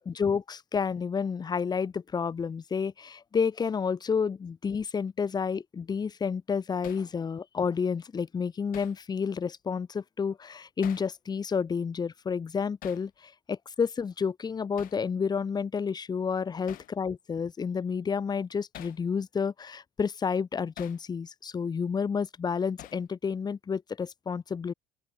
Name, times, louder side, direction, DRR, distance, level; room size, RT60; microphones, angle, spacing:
voice 1, 0.1-24.7, left 6 dB, 25° left, 0.6 m, -30 dB
Hammer, 6.8-7.1 8.7-9.0 10.8-11.1 12.8-13.1 14.8-15.0 16.7-16.9 18.7-19.0 20.8-21.0 22.8-23.1, left 15 dB, 65° left, 0.9 m, -46 dB
open air
supercardioid pair, 85°, 16 cm